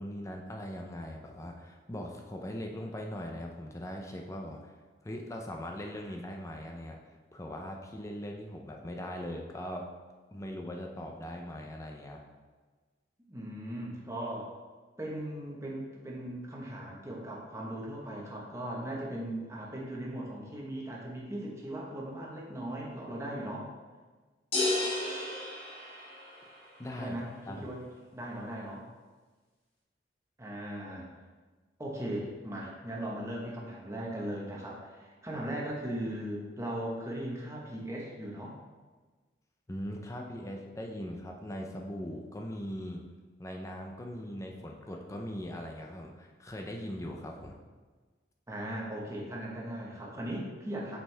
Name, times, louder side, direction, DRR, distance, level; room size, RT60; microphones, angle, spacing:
voice 1, 0.0-4.7 5.0-7.0 7.3-9.9 10.3-12.2 26.8-27.2 27.4-27.7 39.7-43.0 43.4-47.6, equal, 15° left, 1 dB, 0.5 m, -40 dB
voice 2, 13.3-14.5 15.0-23.7 27.0-27.8 28.1-28.9 30.4-31.1 31.8-38.6 48.5-51.0, right 1 dB, 15° right, -3 dB, 1.1 m, -38 dB
sound 1, 24.5-26.6, left 2 dB, 30° left, 1.6 m, -32 dB
5.6 x 5.5 x 3.3 m, 1.4 s
head